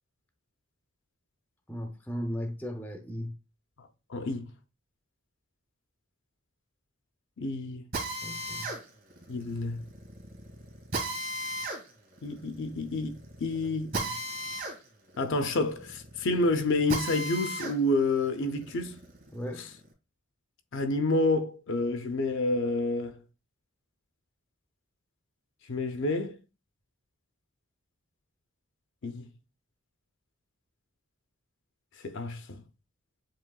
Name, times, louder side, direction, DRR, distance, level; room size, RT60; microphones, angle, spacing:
voice 1, 1.7-3.3 8.2-8.7 14.0-14.1 19.3-19.6, equal, 10° left, 0.6 m, -36 dB
voice 2, 4.1-4.4 7.4-7.8 9.3-9.8 12.2-13.9 15.2-19.0 19.6-19.7 20.7-23.2 25.7-26.4 29.0-29.3 32.0-32.6, left 2 dB, 55° left, 0.5 m, -29 dB
Drill, 7.9-17.8 18.2-19.8, right 1 dB, 40° right, 1.7 m, -37 dB
7.4 x 3.0 x 2.3 m
head